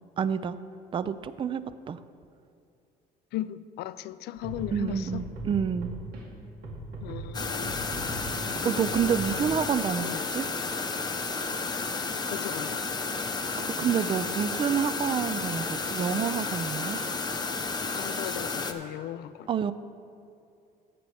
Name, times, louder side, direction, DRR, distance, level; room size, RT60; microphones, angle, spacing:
voice 1, 0.2-0.6 0.9-2.0 4.7-5.9 8.6-10.4 13.8-17.0 19.5-19.7, right 7 dB, 30° right, 14 dB, 0.4 m, -28 dB
voice 2, 3.3-5.3 7.0-7.7 8.6-9.5 10.0-10.2 12.3-12.8 17.9-19.5, left 13 dB, 75° left, 16 dB, 0.4 m, -37 dB
sound 1, 4.4-6.2 6.6-9.6, right 1 dB, 75° right, 2.3 m, -39 dB
sound 2, 7.3-18.7, left 4 dB, 25° left, 0.7 m, -32 dB
14.5 x 8.1 x 3.4 m, 2.5 s
cardioid pair, 110°, 17 cm